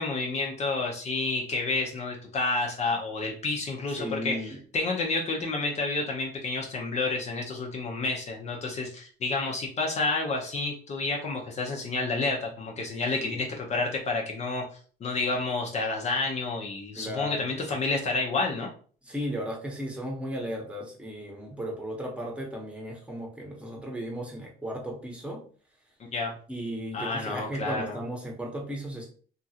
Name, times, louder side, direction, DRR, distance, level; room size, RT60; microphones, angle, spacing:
voice 1, 0.0-14.6 15.0-18.7 26.1-26.4 26.9-28.0, left 3 dB, 40° left, 0 dB, 0.7 m, -30 dB
voice 2, 4.0-4.6 13.1-13.5 16.9-17.8 19.0-25.4 26.5-29.0, equal, 5° right, 0 dB, 0.9 m, -35 dB
2.9 x 2.4 x 2.8 m, 0.43 s
cardioid pair, 110°, 17 cm